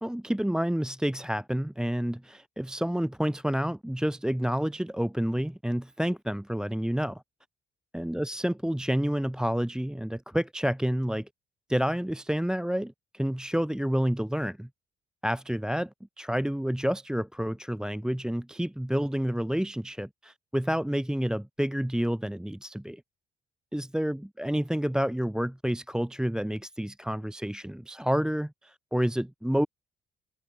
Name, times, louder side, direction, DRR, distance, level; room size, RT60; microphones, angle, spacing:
voice 1, 0.0-7.2 7.9-11.3 11.7-14.7 15.2-15.9 16.2-23.0 23.7-29.7, equal, 5° right, 1.4 m, -29 dB
cardioid pair, 90°, 20 cm